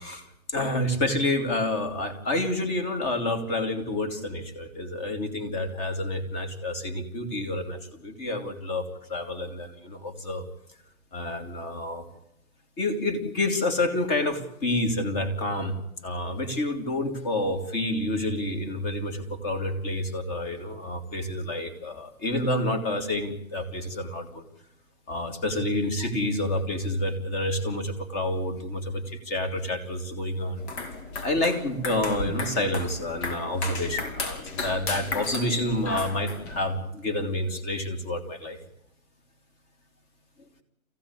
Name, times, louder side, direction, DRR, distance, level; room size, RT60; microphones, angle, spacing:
voice 1, 0.0-10.4 11.1-12.1 12.8-15.7 16.0-24.4 25.1-30.6 31.2-38.6, left 1 dB, 20° left, 6 dB, 2.9 m, -29 dB
sound 1, 30.6-36.6, left 3 dB, 50° left, 4.9 m, -34 dB
23.5 x 16.0 x 9.7 m, 0.84 s
hypercardioid pair, 150°, 43 cm